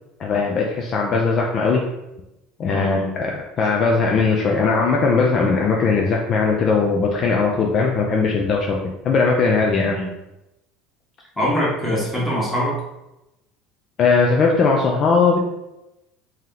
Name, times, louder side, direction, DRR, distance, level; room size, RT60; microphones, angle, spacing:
voice 1, 0.2-1.9 2.6-10.0 14.0-15.4, left 4 dB, 35° left, 0 dB, 0.4 m, -19 dB
voice 2, 2.7-3.1 9.7-10.1 11.4-12.8, equal, 5° left, -7 dB, 1.3 m, -23 dB
3.2 x 2.8 x 3.7 m, 0.91 s
cardioid pair, 145°, 0 cm